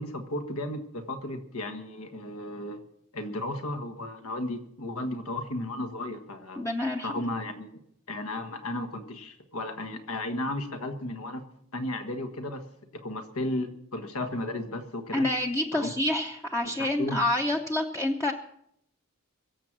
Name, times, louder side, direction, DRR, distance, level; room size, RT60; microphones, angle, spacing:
voice 1, 0.0-2.8 3.1-6.7 7.0-7.8 8.1-11.4 11.7-12.6 12.9-15.3 15.7-15.9 16.6-16.7 17.0-17.2, left 1 dB, 80° left, 7 dB, 1.6 m, -34 dB
voice 2, 6.6-7.1 15.1-18.3, left 1 dB, 15° left, 1 dB, 0.7 m, -27 dB
23.0 x 7.7 x 6.1 m, 0.73 s
head